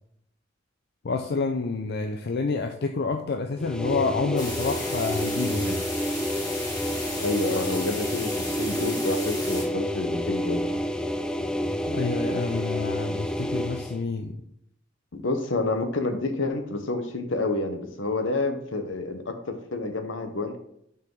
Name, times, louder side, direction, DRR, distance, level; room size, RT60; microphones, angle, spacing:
voice 1, 1.0-5.8 11.9-14.3, left 4 dB, 55° left, 5 dB, 0.5 m, -28 dB
sound 1, 3.6-14.0, equal, 5° left, 0.3 m, -29 dB
sound 2, 4.4-9.6, left 1 dB, 20° left, 2.5 m, -35 dB
voice 2, 7.2-10.7 15.1-20.6, left 2 dB, 75° left, 7 dB, 0.9 m, -29 dB
6.1 x 4.8 x 3.8 m, 0.73 s
head